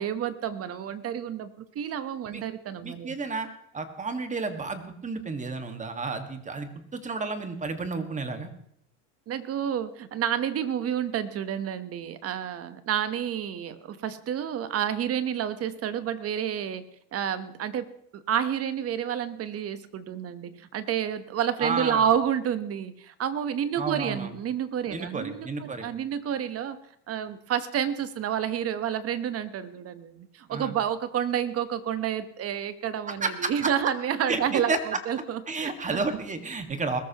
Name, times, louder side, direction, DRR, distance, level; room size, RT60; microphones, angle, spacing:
voice 1, 0.0-1.5 1.7-3.2 9.3-16.8 17.1-26.8 27.1-36.0, right 9 dB, 40° right, 13 dB, 1.1 m, -29 dB
voice 2, 2.8-3.5 3.7-8.5 21.6-22.1 23.8-24.3 24.9-25.9 30.5-30.7 33.2-33.7 34.3-34.8 35.5-37.0, right 4 dB, 20° right, 7 dB, 1.8 m, -31 dB
21.0 x 14.0 x 3.0 m, 0.71 s
supercardioid pair, 110°, 37 cm